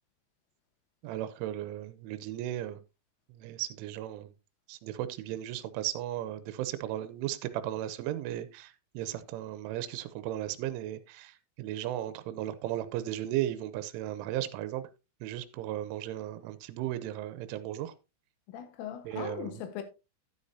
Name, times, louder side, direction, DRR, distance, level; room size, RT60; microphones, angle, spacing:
voice 1, 1.0-2.8 3.3-4.3 4.7-14.9 15.2-17.9 19.0-19.6, right 13 dB, 85° right, 3.2 m, -36 dB
voice 2, 18.5-19.8, left 9 dB, 90° left, 3.9 m, -39 dB
11.5 x 9.8 x 2.7 m
omnidirectional pair, 5.6 m